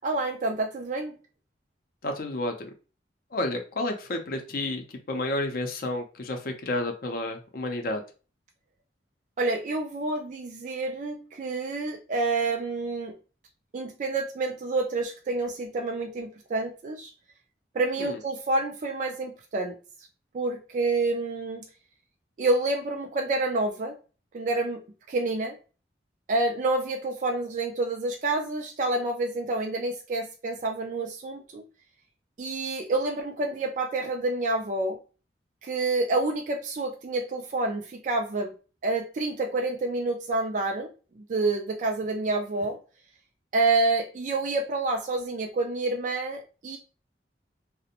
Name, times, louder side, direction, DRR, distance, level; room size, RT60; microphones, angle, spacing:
voice 1, 0.0-1.1 9.4-13.1 13.7-17.1 17.7-19.8 20.3-21.6 22.4-23.9 24.3-24.8 25.1-25.5 26.3-31.6 32.4-35.0 35.6-38.5 38.8-40.9 41.2-42.8 43.5-46.8, right 2 dB, 45° right, 3 dB, 0.3 m, -28 dB
voice 2, 2.0-2.7 3.3-8.0 18.0-18.2, left 2 dB, 55° left, 4 dB, 0.5 m, -31 dB
2.5 x 2.0 x 2.8 m, 0.34 s
head